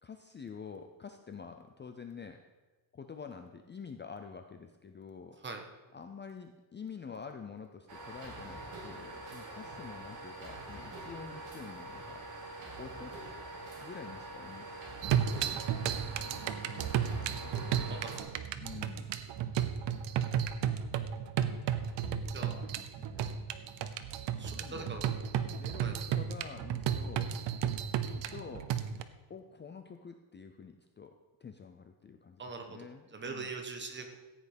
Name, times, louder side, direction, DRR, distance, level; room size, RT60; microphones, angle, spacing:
voice 1, 0.0-2.4 2.9-5.4 5.9-12.2 12.8-13.2 13.8-14.7 15.7-16.2 16.7-18.1 18.6-19.1 22.0-23.4 24.5-25.0 25.5-27.3 28.0-28.7 29.3-31.1 31.4-33.5, left 6 dB, 25° left, 6 dB, 0.5 m, -48 dB
sound 1, 7.9-18.2, right 2 dB, 45° right, 3.2 m, -45 dB
sound 2, 15.0-29.0, right 9 dB, 70° right, 0.9 m, -33 dB
voice 2, 17.9-18.4 22.3-22.6 24.4-25.5 25.8-26.0 32.4-34.2, right 4 dB, 25° right, 4 dB, 1.3 m, -43 dB
15.0 x 8.8 x 5.2 m, 1.2 s
cardioid pair, 175°, 46 cm